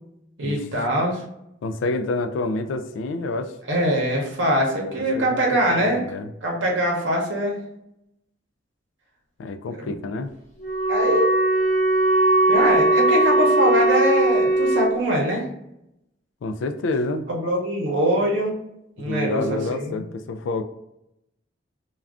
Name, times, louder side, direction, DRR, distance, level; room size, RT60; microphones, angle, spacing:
voice 1, 0.4-1.2 3.7-6.0 6.4-7.6 9.8-9.9 10.9-11.3 12.5-15.4 17.3-18.6 19.0-20.0, equal, 80° right, -1 dB, 0.7 m, -23 dB
voice 2, 1.6-3.6 5.1-6.3 9.4-10.3 16.4-17.3 19.0-20.6, left 2 dB, 80° left, 7 dB, 0.3 m, -28 dB
Wind instrument woodwind instrument, 10.6-15.0, right 2 dB, 40° left, 0.7 m, -19 dB
2.4 x 2.2 x 3.4 m, 0.82 s
head